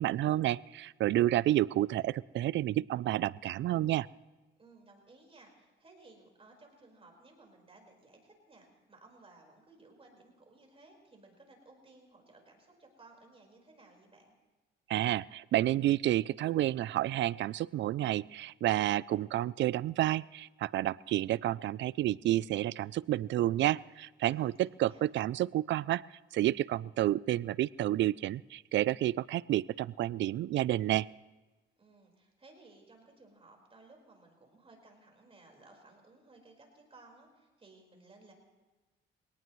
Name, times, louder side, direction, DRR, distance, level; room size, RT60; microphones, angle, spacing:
voice 1, 0.0-4.1 14.9-26.0 26.3-31.1, right 14 dB, 65° right, 21 dB, 0.4 m, -30 dB
voice 2, 4.6-14.3 24.3-25.1 31.8-38.3, right 2 dB, 30° right, 1 dB, 4.7 m, -59 dB
24.5 x 18.5 x 3.2 m, 1.2 s
cardioid pair, 90°, 20 cm